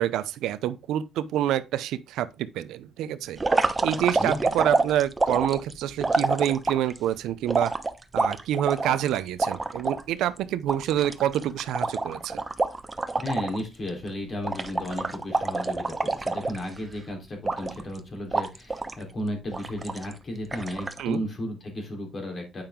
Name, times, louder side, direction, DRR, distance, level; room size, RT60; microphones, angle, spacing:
voice 1, 0.0-3.4 3.8-7.8 8.1-12.4 21.0-21.2, right 11 dB, 90° right, 0.6 m, -27 dB
sound 1, 3.4-7.0 7.5-10.0 10.4-10.5 10.7-13.6 13.9-14.1 14.4-16.9 17.4-18.0 18.3-19.0 19.5-20.1 20.5-21.0, right 3 dB, 20° right, 0.9 m, -27 dB
voice 2, 13.2-22.6, left 1 dB, 45° left, 3.5 m, -34 dB
8.8 x 5.7 x 3.7 m
cardioid pair, 90°, 0 cm